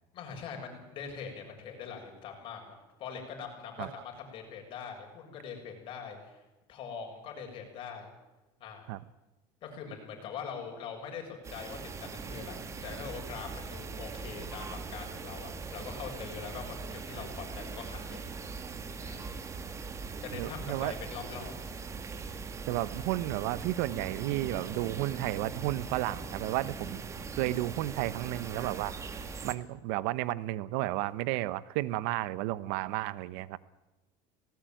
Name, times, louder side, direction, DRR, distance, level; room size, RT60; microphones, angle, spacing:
voice 1, 0.1-6.4 6.7-8.1 8.6-9.0 9.6-18.2 19.0-19.5 20.2-21.5, left 6 dB, 50° left, 3 dB, 7.0 m, -43 dB
sound 1, 11.4-29.5, right 4 dB, 25° right, 1.9 m, -41 dB
voice 2, 20.3-21.0 22.7-27.1 27.4-28.9 29.4-33.6, right 16 dB, 75° right, 17 dB, 0.9 m, -32 dB
18.5 x 18.0 x 9.2 m, 1.0 s
supercardioid pair, 120°, 11 cm